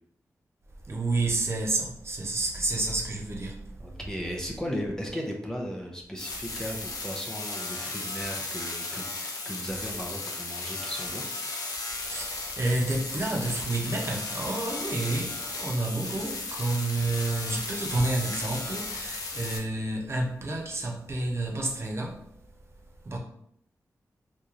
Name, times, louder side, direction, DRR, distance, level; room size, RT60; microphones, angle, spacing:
voice 1, 0.8-4.0 11.9-22.3 23.0-23.2, right 2 dB, 45° right, 0.8 m, -30 dB
voice 2, 3.8-11.3, equal, 10° left, 0.6 m, -36 dB
sound 1, 6.2-19.6, left 3 dB, 85° left, 0.7 m, -35 dB
3.0 x 2.6 x 3.7 m
wide cardioid pair, 75°, 6 cm